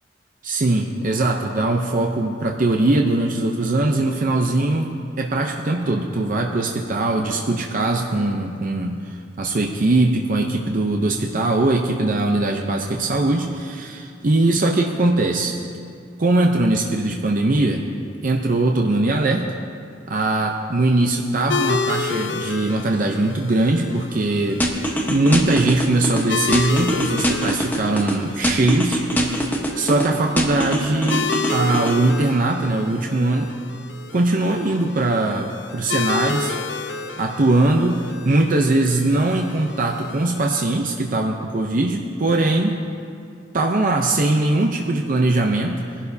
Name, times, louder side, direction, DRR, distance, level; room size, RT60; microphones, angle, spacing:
voice 1, 0.4-15.5 16.2-17.8 18.2-19.5 20.1-24.6 25.1-33.5 34.1-35.5 35.7-36.6 37.2-42.8 43.5-45.8, right 2 dB, 45° right, 2 dB, 0.6 m, -21 dB
sound 1, 21.5-40.6, left 4 dB, 75° left, 0.8 m, -31 dB
sound 2, 24.6-26.2 26.5-28.1 28.4-30.1 30.4-32.0, right 1 dB, 10° left, 1.1 m, -22 dB
21.0 x 11.5 x 2.7 m, 2.4 s
head